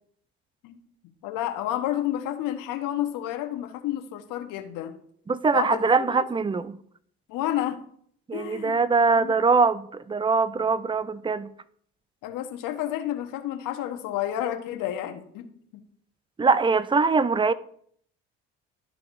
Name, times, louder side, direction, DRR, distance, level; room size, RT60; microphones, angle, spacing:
voice 1, 1.0-4.9 5.5-5.8 6.1-6.3 7.3-7.8 8.3-9.3 12.2-15.8, left 12 dB, 70° left, 1.1 m, -30 dB
voice 2, 5.3-6.8 8.3-11.5 16.4-17.5, right 4 dB, 15° right, 0.5 m, -22 dB
12.5 x 4.7 x 2.6 m
hypercardioid pair, 60°, 33 cm